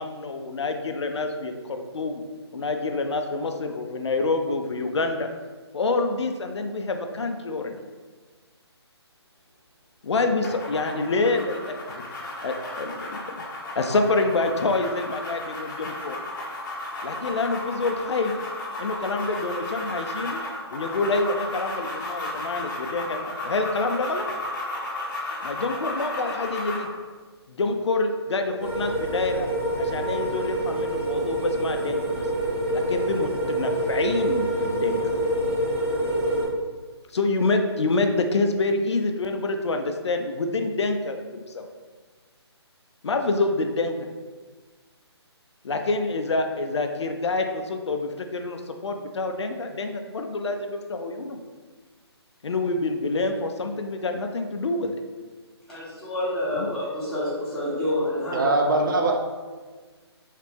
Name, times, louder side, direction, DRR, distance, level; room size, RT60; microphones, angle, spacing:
voice 1, 0.0-2.2 2.5-5.3 5.7-7.8 10.0-12.0 12.4-13.4 13.8-16.2 17.0-18.3 18.8-20.4 20.7-24.3 25.4-26.9 27.5-29.5 29.8-32.3 32.7-35.0 37.1-41.7 43.0-43.9 45.6-51.4 52.4-55.0 56.6-56.7, left 3 dB, 80° left, 5 dB, 0.4 m, -27 dB
sound 1, 10.4-26.9, left 2 dB, 45° left, 0.8 m, -34 dB
sound 2, 28.6-36.5, right 1 dB, 25° right, 1.2 m, -26 dB
voice 2, 55.7-58.5 59.0-59.1, left 1 dB, 5° left, -13 dB, 1.2 m, -28 dB
voice 3, 58.3-59.1, right 2 dB, 45° right, 1 dB, 0.5 m, -21 dB
3.4 x 3.2 x 3.0 m, 1.4 s
hypercardioid pair, 150°, 14 cm